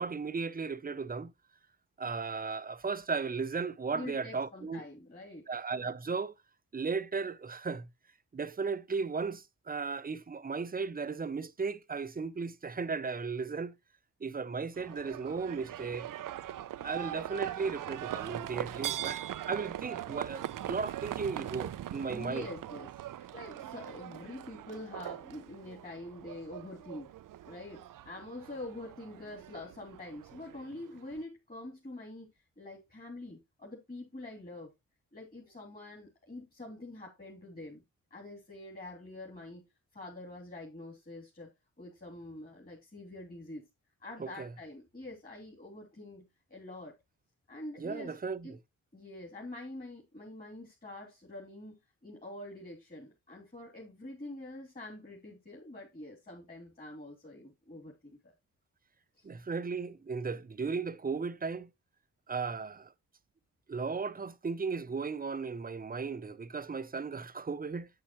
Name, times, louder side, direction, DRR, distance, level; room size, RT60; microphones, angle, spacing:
voice 1, 0.0-1.3 2.0-4.8 5.5-6.3 6.7-7.9 8.3-13.7 14.2-16.1 16.8-19.2 19.5-22.5 44.2-44.6 47.8-48.6 59.2-61.7 62.3-62.9 63.7-67.9, right 5 dB, 25° right, 0.7 m, -36 dB
voice 2, 3.9-5.5 22.1-27.1 27.5-32.3 32.6-34.7 35.1-37.8 38.1-39.6 39.9-41.5 41.8-43.7 44.0-46.2 46.5-46.9 47.5-48.2 48.4-48.5 48.9-58.3 59.2-59.3, left 2 dB, 25° left, 3.0 m, -46 dB
Livestock farm animals working animals, 14.8-31.2, right 12 dB, 70° right, 0.6 m, -41 dB
8.5 x 8.5 x 3.0 m
cardioid pair, 75°, 34 cm